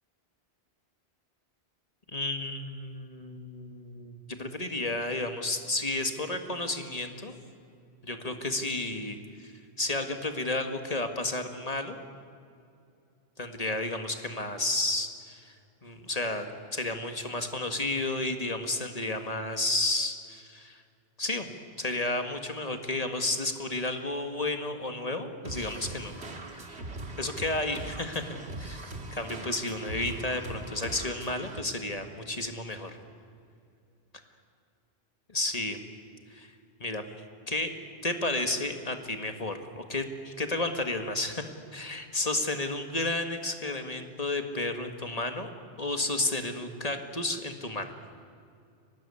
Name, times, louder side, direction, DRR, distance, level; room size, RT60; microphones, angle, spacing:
voice 1, 2.1-7.4 8.0-9.5 9.8-12.0 13.4-15.5 15.8-16.5 16.7-20.8 21.2-21.5 21.8-26.2 27.2-28.8 29.1-33.0 35.3-35.8 36.3-36.5 36.8-37.0 37.5-37.7 38.0-45.5 45.8-47.9, left 2 dB, 35° left, 6 dB, 1.9 m, -32 dB
sound 1, 25.4-31.6, right 2 dB, 80° right, 2.3 m, -41 dB
24.5 x 19.0 x 9.8 m, 2.4 s
omnidirectional pair, 1.1 m